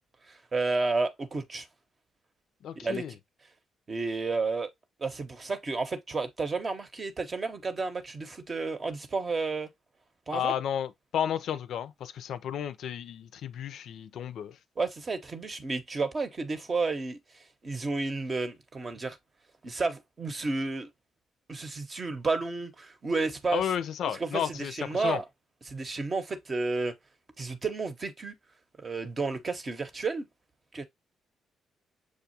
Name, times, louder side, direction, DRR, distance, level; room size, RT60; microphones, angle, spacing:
voice 1, 0.3-1.7 2.8-3.0 3.9-4.7 5.0-9.7 10.3-10.5 14.8-17.2 17.6-19.2 19.6-20.9 21.5-23.6 24.2-25.2 25.7-27.0 27.4-28.3 28.8-30.2 30.7-30.8, right 3 dB, 40° right, 0.8 m, -31 dB
voice 2, 2.6-3.1 10.3-14.6 23.5-25.2, left 9 dB, 75° left, 0.4 m, -32 dB
6.4 x 2.3 x 2.7 m
supercardioid pair, 65°, 0 cm